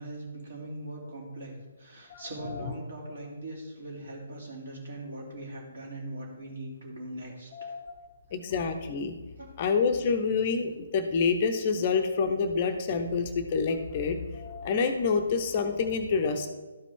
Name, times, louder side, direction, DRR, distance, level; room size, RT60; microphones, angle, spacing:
voice 1, 0.0-1.5 1.8-7.7 9.4-9.5, right 1 dB, 50° right, -1 dB, 2.6 m, -40 dB
voice 2, 2.1-2.6 7.5-8.0 8.3-9.1 9.6-16.5, left 5 dB, 30° left, 7 dB, 0.6 m, -28 dB
12.5 x 4.9 x 3.6 m, 1.3 s
figure-of-eight pair, 135°, 0 cm